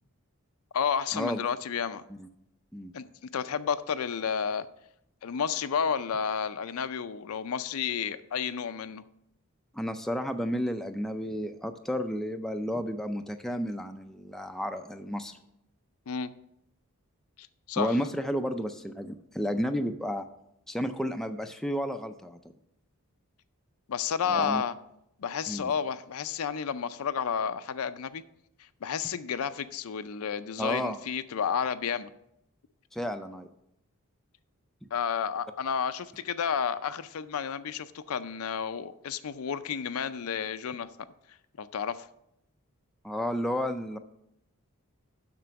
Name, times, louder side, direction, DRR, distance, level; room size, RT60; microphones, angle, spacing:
voice 1, 0.7-2.0 2.9-3.0 3.3-4.7 5.2-9.0 16.1-16.3 17.7-18.0 23.9-24.7 25.2-28.2 28.8-32.1 34.9-40.9 41.6-42.1, left 7 dB, 75° left, 0.5 m, -31 dB
voice 2, 9.7-15.4 17.8-20.3 20.7-22.4 24.3-24.6 25.5-25.7 30.6-31.0 32.9-33.5 34.8-34.9 43.0-44.0, equal, ahead, 0.4 m, -32 dB
7.5 x 6.1 x 5.7 m
head